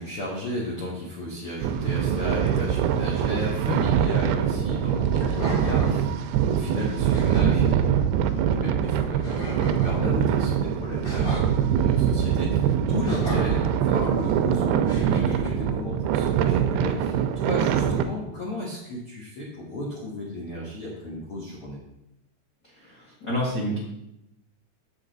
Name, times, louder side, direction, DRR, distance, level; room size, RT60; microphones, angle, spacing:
voice 1, 0.0-6.1 6.5-21.8, left 1 dB, 80° left, -4 dB, 1.2 m, -34 dB
sound 1, 1.6-18.0, right 9 dB, 80° right, 2.4 m, -23 dB
sound 2, 3.6-3.9 5.2-6.0 6.7-6.8 7.1-7.6 9.2-10.0 11.0-11.5 13.0-13.7 14.8-15.5, equal, 25° left, 1.5 m, -33 dB
voice 2, 22.7-23.8, equal, 40° left, -5 dB, 1.2 m, -29 dB
8.0 x 7.1 x 3.9 m, 0.85 s
omnidirectional pair, 4.8 m